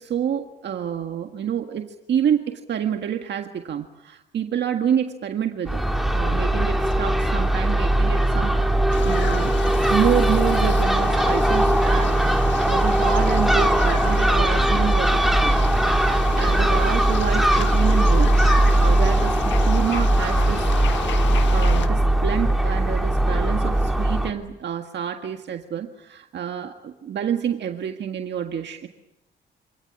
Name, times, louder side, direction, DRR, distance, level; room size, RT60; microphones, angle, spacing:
voice 1, 0.0-5.8 6.1-9.6 9.9-15.5 16.4-18.4 18.8-21.0 21.5-28.9, right 9 dB, 60° right, 5 dB, 1.7 m, -28 dB
Crow / Gull seagull, 5.7-24.3, right 1 dB, ahead, 2.9 m, -19 dB
sound 1, 8.9-21.9, left 9 dB, 70° left, 1.6 m, -35 dB
27.0 x 18.5 x 9.8 m, 0.95 s
cardioid pair, 90°, 20 cm